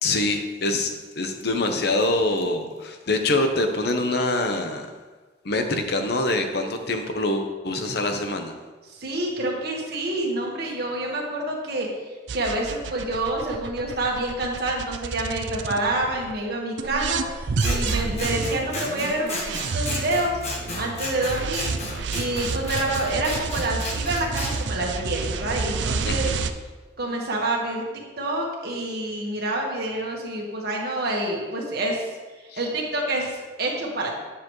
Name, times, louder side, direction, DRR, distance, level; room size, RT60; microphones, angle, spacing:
voice 1, 0.0-4.9 5.4-8.5 26.0-26.4 32.5-32.6, left 2 dB, 60° left, 6 dB, 0.8 m, -25 dB
voice 2, 8.9-11.9 12.3-21.7 22.1-26.3 27.0-27.8 28.2-32.1 32.3-34.1, right 1 dB, 55° right, -1 dB, 1.6 m, -27 dB
sound 1, 12.3-16.3 16.8-26.5, right 4 dB, 75° right, 0.5 m, -30 dB
Scissors, 17.6-24.5, left 2 dB, 35° left, 1.2 m, -34 dB
9.7 x 6.9 x 3.1 m, 1.3 s
head